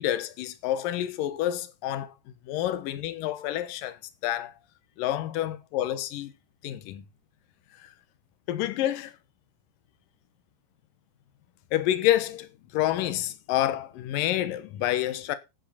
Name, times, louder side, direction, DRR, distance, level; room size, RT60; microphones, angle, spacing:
voice 1, 0.0-2.1 2.4-4.5 5.0-6.3 6.6-7.0 7.8-7.9 8.5-9.1 11.7-15.4, left 13 dB, 70° left, 2.3 m, -28 dB
12.0 x 10.0 x 4.2 m
omnidirectional pair, 5.1 m